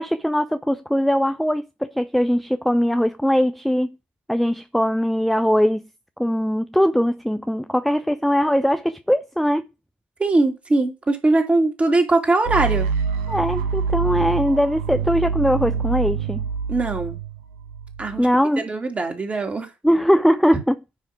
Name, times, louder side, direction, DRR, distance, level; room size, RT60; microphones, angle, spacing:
voice 1, 0.0-4.0 4.3-5.8 6.2-9.6 13.3-16.4 18.2-18.6 19.8-20.8, equal, ahead, 0.5 m, -20 dB
voice 2, 10.2-12.9 16.7-17.2 18.0-18.3 18.6-19.7, right 2 dB, 25° right, 2.8 m, -21 dB
sound 1, 12.4-18.4, right 6 dB, 75° right, 1.3 m, -26 dB
10.0 x 3.6 x 5.9 m
hypercardioid pair, 65°, 5 cm